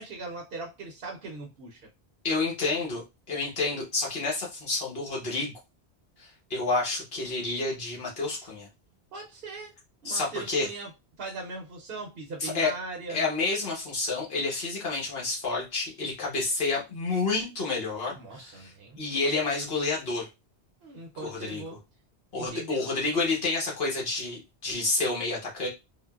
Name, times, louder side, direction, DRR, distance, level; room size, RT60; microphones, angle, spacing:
voice 1, 0.0-1.8 9.1-9.7 10.0-10.9 11.2-13.2 18.1-19.3 20.8-21.8 22.3-22.9, right 3 dB, 65° right, -1 dB, 0.9 m, -40 dB
voice 2, 2.2-5.5 6.2-8.7 10.0-10.7 12.4-12.7 13.1-20.3 21.2-21.6 22.3-25.7, left 3 dB, 65° left, -2 dB, 1.3 m, -29 dB
3.6 x 2.1 x 2.3 m, 0.24 s
omnidirectional pair, 1.1 m